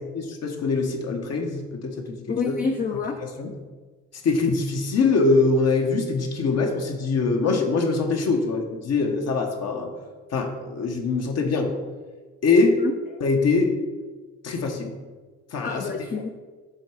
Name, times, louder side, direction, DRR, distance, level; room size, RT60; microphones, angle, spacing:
voice 1, 0.2-2.6 3.4-3.5 4.2-9.9 10.3-11.8 12.4-12.8 13.2-13.7 14.4-14.9 15.5-15.8, left 3 dB, 55° left, 2 dB, 1.2 m, -23 dB
voice 2, 2.3-3.2 12.8-13.2 15.6-16.3, left 5 dB, 30° left, 3 dB, 0.6 m, -28 dB
7.6 x 3.6 x 4.9 m, 1.4 s
cardioid pair, 90°, 30 cm